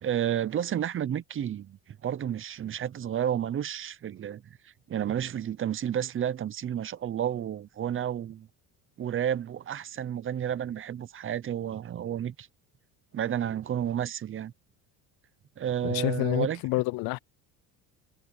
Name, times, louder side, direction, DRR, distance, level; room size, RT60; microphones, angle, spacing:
voice 1, 0.0-4.4 4.9-8.5 9.0-12.5 13.1-14.5 15.6-16.6, right 10 dB, 35° right, 0.8 m, -31 dB
voice 2, 15.8-17.2, left 21 dB, 70° left, 0.6 m, -28 dB
cardioid pair, 115°, 37 cm